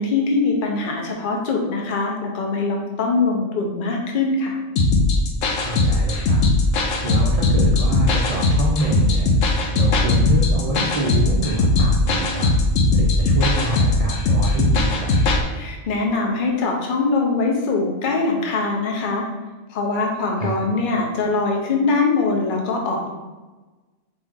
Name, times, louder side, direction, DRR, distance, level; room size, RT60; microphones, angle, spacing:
voice 1, 0.0-4.6 15.5-19.2 19.7-23.1, left 3 dB, 50° left, 0 dB, 0.8 m, -22 dB
sound 1, 4.8-15.4, left 2 dB, 85° left, 1.0 m, -19 dB
voice 2, 5.6-6.5 7.0-12.5 12.9-15.3 20.4-20.6, right 2 dB, 45° right, -4 dB, 0.5 m, -26 dB
4.3 x 3.3 x 3.6 m, 1.2 s
omnidirectional pair, 1.3 m